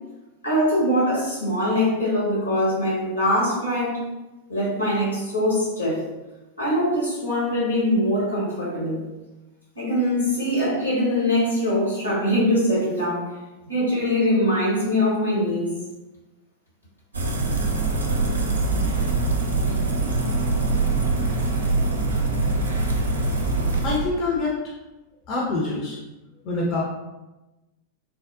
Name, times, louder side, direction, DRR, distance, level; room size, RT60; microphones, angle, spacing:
voice 1, 0.4-4.0 4.5-6.0 6.6-9.0 9.7-13.3 13.6-15.7, left 1 dB, 85° left, -7 dB, 1.3 m, -22 dB
sound 1, 17.1-24.0, right 3 dB, 75° right, 0.4 m, -23 dB
voice 2, 23.8-24.7 25.3-26.0 26.4-26.8, left 3 dB, 40° left, -3 dB, 0.5 m, -25 dB
3.5 x 2.0 x 2.5 m, 1.1 s
figure-of-eight pair, 90°, 0 cm